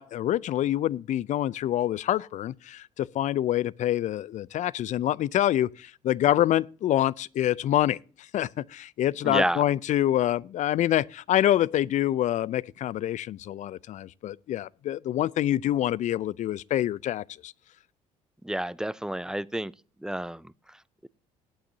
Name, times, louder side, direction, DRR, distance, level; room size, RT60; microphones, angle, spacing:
voice 1, 0.0-8.0 8.3-17.5, left 12 dB, 50° left, 0.4 m, -26 dB
voice 2, 9.2-9.6 18.4-19.7 20.0-21.1, right 1 dB, 5° right, 0.5 m, -30 dB
18.5 x 8.6 x 2.7 m
hypercardioid pair, 60°, 16 cm